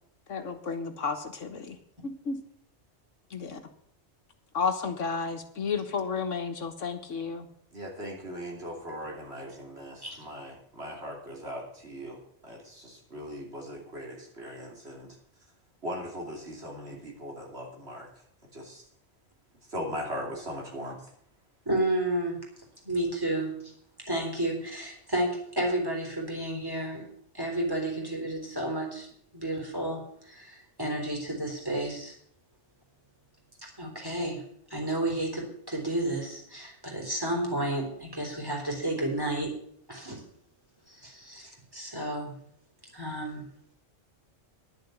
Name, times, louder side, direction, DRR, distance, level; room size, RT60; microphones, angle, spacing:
voice 1, 0.3-1.8 2.0-2.4 3.3-3.6 4.5-7.5, left 5 dB, 75° left, 1.6 m, -32 dB
voice 2, 7.7-15.1 15.8-18.1 18.5-18.8 19.7-21.0, equal, 55° right, 3.2 m, -39 dB
voice 3, 21.7-22.4 22.8-23.7 24.1-27.1 27.3-32.2 33.6-39.5 39.9-40.2 40.9-42.4 42.9-43.5, right 1 dB, 15° right, 3.7 m, -31 dB
10.5 x 7.1 x 7.9 m
omnidirectional pair, 1.3 m